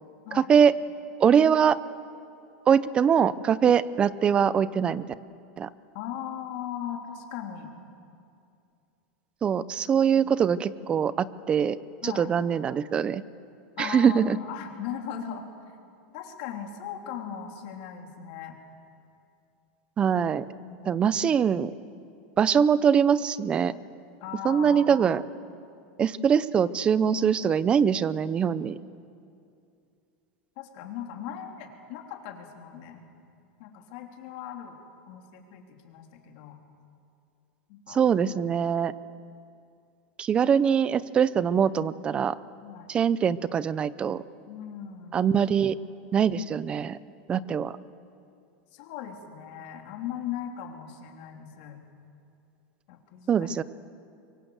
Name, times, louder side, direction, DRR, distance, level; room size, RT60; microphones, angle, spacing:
voice 1, 0.3-0.7 1.2-1.8 2.7-5.1 5.6-5.7 9.4-11.8 12.0-13.2 13.8-14.4 20.0-20.5 20.9-21.7 22.4-23.7 24.4-25.2 26.0-28.8 37.9-38.9 40.2-42.3 42.9-44.2 45.1-45.8 46.1-47.0 47.3-47.8 53.3-53.6, right 7 dB, 20° right, 17 dB, 0.6 m, -23 dB
voice 2, 5.9-7.7 10.1-10.4 12.0-12.3 13.8-15.4 16.1-18.6 20.5-21.0 24.2-25.1 30.6-33.0 33.6-34.8 35.1-36.6 37.7-38.0 42.6-42.9 44.5-45.2 48.7-51.8 52.9-53.5, left 9 dB, 55° left, 2 dB, 3.4 m, -38 dB
25.0 x 23.5 x 8.0 m, 2.5 s
supercardioid pair, 160°, 5 cm